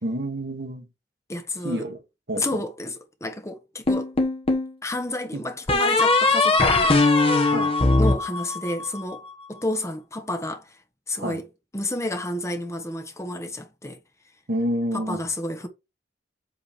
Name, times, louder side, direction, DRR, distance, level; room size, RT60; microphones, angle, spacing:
voice 1, 0.0-0.9 1.6-2.0 2.3-2.6 5.3-5.4 7.5-7.7 11.2-11.4 14.5-15.2, equal, 60° right, 1.6 m, -28 dB
voice 2, 1.3-1.8 2.4-4.1 4.8-7.0 8.0-10.8 11.1-11.4 11.7-14.0 14.9-15.7, left 1 dB, 15° left, 1.2 m, -30 dB
sound 1, 3.9-4.7 5.7-9.0, left 3 dB, 30° left, 1.5 m, -20 dB
8.1 x 3.9 x 4.5 m
head